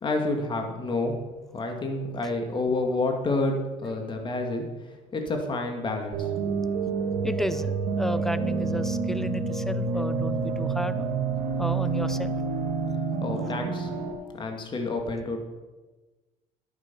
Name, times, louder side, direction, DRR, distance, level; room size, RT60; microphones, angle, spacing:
voice 1, 0.0-1.2 1.5-4.6 5.1-6.3 13.2-13.9 14.3-15.4, left 2 dB, 35° left, 4 dB, 2.3 m, -29 dB
sound 1, 6.1-14.1, right 4 dB, 80° right, 2.1 m, -28 dB
voice 2, 7.2-11.1 11.6-12.4, equal, 5° left, 13 dB, 0.6 m, -32 dB
12.0 x 9.6 x 5.5 m, 1.2 s
cardioid pair, 110°, 15 cm